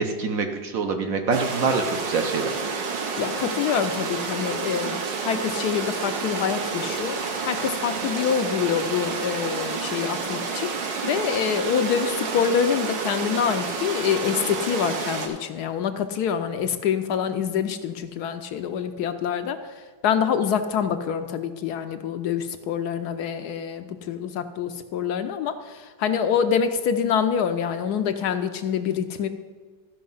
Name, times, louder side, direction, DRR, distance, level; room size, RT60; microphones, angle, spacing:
voice 1, 0.0-2.5, right 4 dB, 60° right, 5 dB, 1.0 m, -25 dB
sound 1, 1.3-15.3, right 5 dB, 85° right, 1.8 m, -29 dB
voice 2, 3.2-7.2 7.4-10.7 11.0-19.7 20.0-29.3, left 7 dB, 70° left, 8 dB, 1.0 m, -26 dB
13.5 x 5.6 x 5.4 m, 1.5 s
omnidirectional pair, 1.9 m